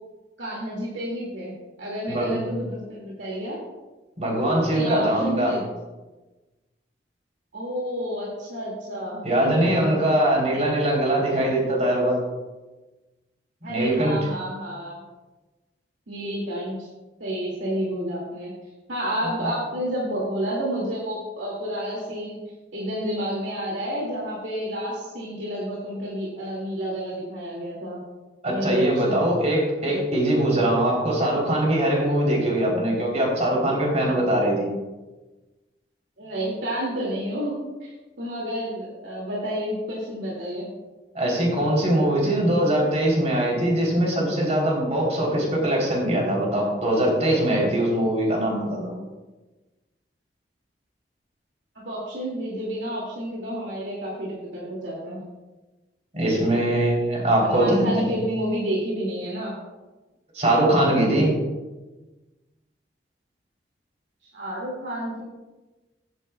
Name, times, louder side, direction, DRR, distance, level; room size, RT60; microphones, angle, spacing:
voice 1, 0.4-3.6 4.7-5.7 7.5-9.7 10.1-10.2 10.5-10.6 13.6-15.0 16.1-16.9 17.2-18.5 18.9-22.4 22.7-28.0 28.5-29.2 29.8-30.1 36.2-40.7 51.7-55.2 57.4-59.5 64.2-65.2, equal, 80° right, -5 dB, 2.4 m, -30 dB
voice 2, 4.2-5.5 9.2-12.2 13.7-14.1 28.4-34.7 41.1-48.9 56.1-58.0 60.3-61.4, right 1 dB, 40° right, -2 dB, 3.4 m, -22 dB
15.0 x 9.2 x 2.3 m, 1.2 s
head